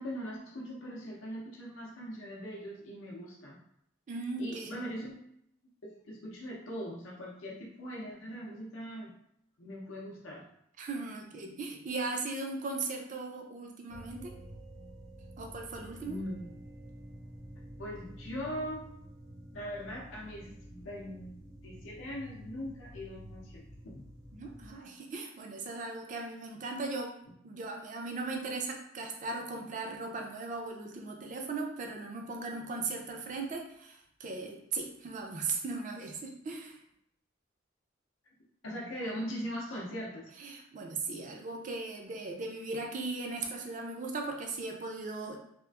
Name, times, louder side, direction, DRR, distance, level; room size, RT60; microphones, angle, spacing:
voice 1, 0.0-3.6 4.4-5.1 5.8-9.1 9.6-10.5 16.0-16.5 17.8-18.9 19.5-23.6 23.9-24.0 38.6-40.3, equal, 75° left, -3 dB, 0.6 m, -40 dB
voice 2, 4.1-4.7 10.8-14.3 15.4-16.2 24.3-27.2 27.4-36.8 40.4-45.4, right 3 dB, 40° right, 2 dB, 0.4 m, -38 dB
sound 1, 13.9-24.7, equal, 65° right, 0.8 m, -49 dB
2.9 x 2.4 x 2.3 m, 0.75 s
head